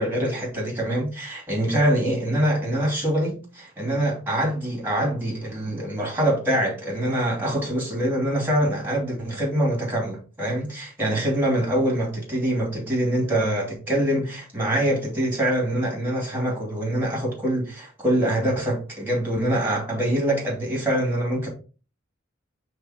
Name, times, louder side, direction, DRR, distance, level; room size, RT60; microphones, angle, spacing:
voice 1, 0.0-21.5, right 1 dB, 10° right, 2.7 m, -24 dB
5.5 x 3.5 x 4.9 m
head